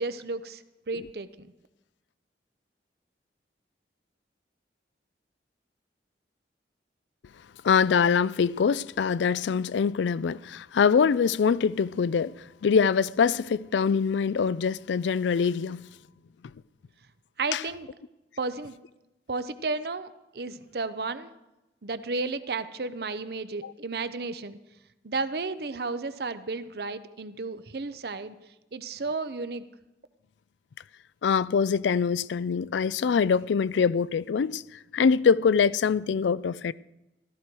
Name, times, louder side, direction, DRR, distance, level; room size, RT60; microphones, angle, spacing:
voice 1, 0.0-1.5 17.4-17.9 18.4-18.8 19.3-20.1 20.3-21.3 21.8-24.6 25.0-28.3 28.7-29.6, right 3 dB, 60° right, 0.7 m, -33 dB
voice 2, 7.6-15.8 17.5-17.6 23.6-23.7 31.2-36.7, left 6 dB, 85° left, 0.4 m, -24 dB
14.5 x 13.0 x 4.6 m
head